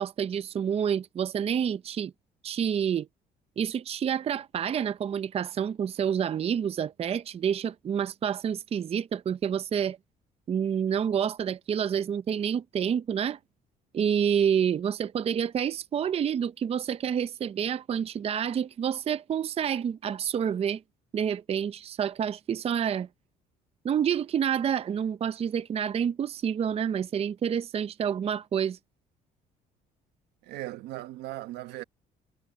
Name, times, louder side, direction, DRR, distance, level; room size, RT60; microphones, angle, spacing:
voice 1, 0.0-2.1 2.4-3.1 3.6-10.0 10.5-13.4 13.9-20.8 21.1-23.1 23.8-28.8, right 8 dB, 35° right, 0.6 m, -28 dB
voice 2, 30.4-31.8, right 16 dB, 90° right, 1.4 m, -38 dB
cardioid pair, 110°, 17 cm